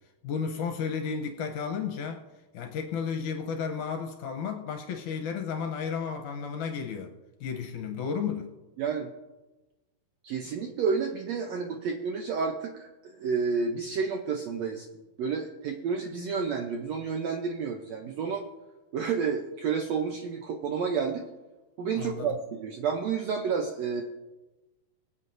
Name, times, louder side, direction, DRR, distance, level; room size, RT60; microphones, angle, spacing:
voice 1, 0.2-2.2 2.5-7.1 7.4-8.5 22.0-22.4, left 6 dB, 75° left, 4 dB, 2.0 m, -33 dB
voice 2, 8.8-9.1 10.2-14.8 15.2-18.4 18.9-21.2 21.8-24.0, right 5 dB, 85° right, 2 dB, 1.5 m, -30 dB
23.5 x 8.1 x 2.6 m, 1.1 s
omnidirectional pair, 4.1 m